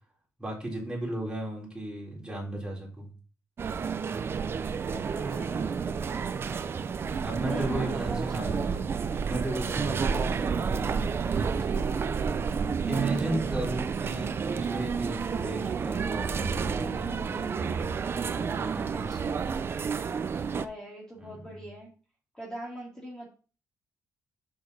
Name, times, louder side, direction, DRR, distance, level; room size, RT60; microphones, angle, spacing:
voice 1, 0.4-3.1 7.2-11.0 12.8-17.9 18.3-19.1 21.2-21.7, right 1 dB, 10° right, -3 dB, 4.0 m, -35 dB
sound 1, 3.6-20.7, right 6 dB, 40° right, 0.5 m, -30 dB
voice 2, 4.9-6.4 7.4-8.8 11.2-12.0 18.9-19.5 20.4-21.9 22.3-23.3, equal, 10° left, -4 dB, 2.3 m, -42 dB
6.8 x 6.6 x 4.1 m, 0.37 s
cardioid pair, 120°, 6 cm